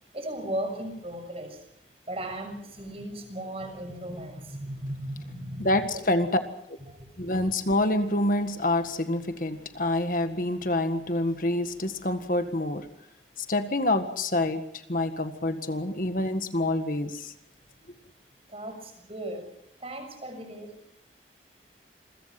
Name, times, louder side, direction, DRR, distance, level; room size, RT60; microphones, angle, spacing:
voice 1, 0.1-1.6 2.1-6.0 6.9-7.5 18.5-19.5 19.8-20.7, right 1 dB, 35° right, 6 dB, 6.6 m, -36 dB
voice 2, 5.6-6.4 7.2-12.9 13.4-17.3, left 1 dB, 50° left, 8 dB, 1.7 m, -27 dB
28.0 x 22.5 x 6.0 m, 0.73 s
head